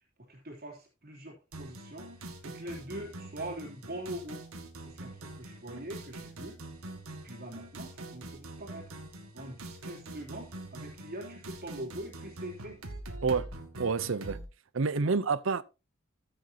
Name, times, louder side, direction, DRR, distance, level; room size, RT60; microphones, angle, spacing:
voice 1, 0.3-4.4 4.8-6.6 7.2-8.9 9.3-12.8 15.0-15.2, right 1 dB, 45° right, 3.0 m, -43 dB
sound 1, 1.5-14.4, right 2 dB, 85° right, 1.9 m, -44 dB
voice 2, 13.8-14.4 14.7-15.6, right 4 dB, 65° right, 0.6 m, -28 dB
14.5 x 7.9 x 2.8 m
head